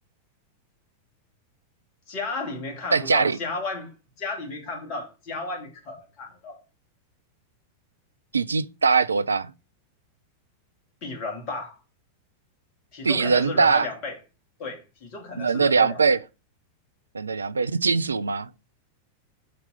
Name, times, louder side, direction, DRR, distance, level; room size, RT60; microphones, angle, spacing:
voice 1, 2.1-3.9 4.2-6.6 11.0-11.8 12.9-14.2 14.6-16.2, left 3 dB, 40° left, 2.3 m, -34 dB
voice 2, 2.9-3.4 8.3-9.5 13.0-13.9 15.4-16.2 17.1-18.5, right 5 dB, 75° right, 0.3 m, -21 dB
5.2 x 4.4 x 5.7 m
figure-of-eight pair, 90°, 0 cm